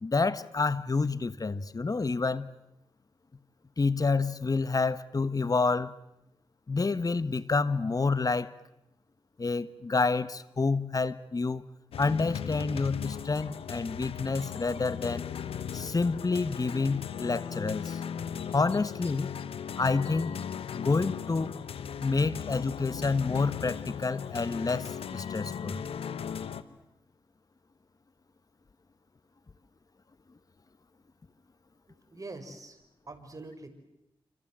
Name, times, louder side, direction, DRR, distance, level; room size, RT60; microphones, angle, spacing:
voice 1, 0.0-2.5 3.8-6.0 6.7-8.5 9.4-11.6 12.0-15.2 15.7-18.0 18.5-19.3 19.8-20.3 20.7-21.5 22.0-25.8, left 4 dB, 40° left, 1.5 m, -28 dB
sound 1, 11.9-26.6, left 8 dB, 85° left, 1.2 m, -37 dB
voice 2, 31.9-33.7, right 2 dB, 35° right, 6.0 m, -45 dB
28.5 x 26.5 x 7.7 m
cardioid pair, 55°, 10 cm